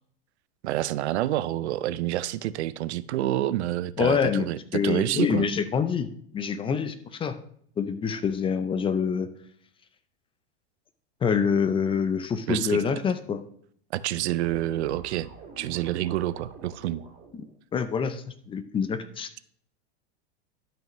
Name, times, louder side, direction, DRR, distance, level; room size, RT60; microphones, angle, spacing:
voice 1, 0.6-5.5 12.5-12.8 13.9-15.3 15.6-17.0, right 14 dB, 90° right, 0.5 m, -28 dB
voice 2, 4.0-4.5 4.7-6.1 6.3-7.3 7.8-9.3 11.2-13.4 17.3-17.4 17.7-19.3, left 6 dB, 15° left, 0.4 m, -26 dB
sound 1, 14.4-17.5, right 4 dB, 25° right, 2.7 m, -46 dB
12.0 x 5.7 x 3.0 m
supercardioid pair, 130°, 33 cm